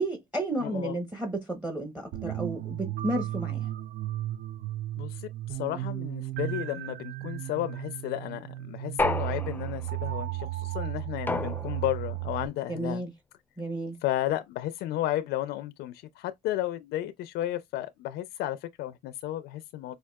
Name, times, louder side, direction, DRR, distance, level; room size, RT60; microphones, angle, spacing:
voice 1, 0.0-3.7 12.7-13.1 13.6-14.0, right 2 dB, 10° right, 0.7 m, -32 dB
voice 2, 0.6-1.0 5.0-13.0 14.0-20.0, left 13 dB, 75° left, 0.4 m, -33 dB
sound 1, 2.1-12.5, right 15 dB, 65° right, 0.4 m, -35 dB
sound 2, 9.0-10.0 11.3-12.1, left 3 dB, 10° left, 0.4 m, -31 dB
4.6 x 2.2 x 2.2 m
cardioid pair, 110°, 17 cm